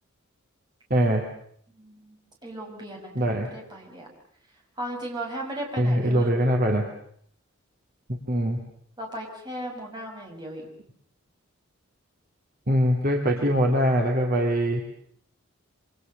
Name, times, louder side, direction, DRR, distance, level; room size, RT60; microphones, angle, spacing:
voice 1, 0.9-1.3 3.1-3.5 5.8-6.9 8.1-8.6 12.7-14.8, equal, 45° right, 1 dB, 2.6 m, -22 dB
voice 2, 1.7-4.1 4.8-6.4 9.0-10.7, right 1 dB, 20° right, 0 dB, 5.9 m, -36 dB
27.0 x 26.0 x 6.7 m, 0.64 s
head